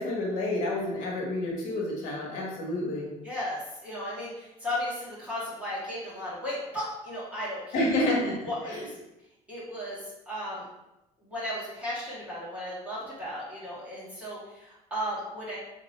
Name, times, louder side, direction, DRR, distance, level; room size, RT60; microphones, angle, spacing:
voice 1, 0.0-3.1 7.7-8.8, left 1 dB, 75° left, -2 dB, 1.2 m, -29 dB
voice 2, 3.2-8.9 9.5-10.0 10.3-10.6 11.2-15.6, left 1 dB, 10° right, -9 dB, 1.5 m, -35 dB
3.8 x 2.6 x 4.2 m, 0.95 s
cardioid pair, 170°, 14 cm